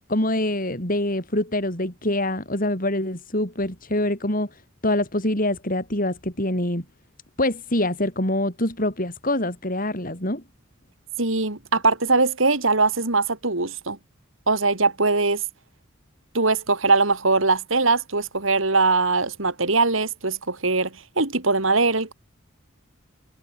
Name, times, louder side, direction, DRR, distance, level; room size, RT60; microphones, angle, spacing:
voice 1, 0.1-6.8 7.4-10.4, left 1 dB, 40° left, 6.3 m, -25 dB
voice 2, 11.2-14.0 14.5-15.4 16.3-22.1, right 3 dB, 70° right, 3.1 m, -21 dB
head